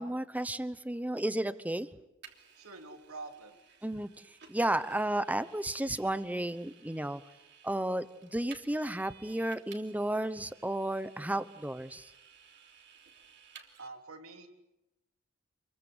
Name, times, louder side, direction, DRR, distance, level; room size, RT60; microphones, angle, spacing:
voice 1, 0.0-1.9 3.8-4.1 4.5-7.2 7.6-12.1, right 1 dB, 5° right, 13 dB, 1.0 m, -33 dB
Vehicle, 2.2-13.9, right 7 dB, 55° right, 3.2 m, -57 dB
voice 2, 2.5-3.6 13.8-14.5, right 3 dB, 85° right, 4 dB, 3.4 m, -46 dB
28.5 x 22.5 x 8.1 m, 0.94 s
head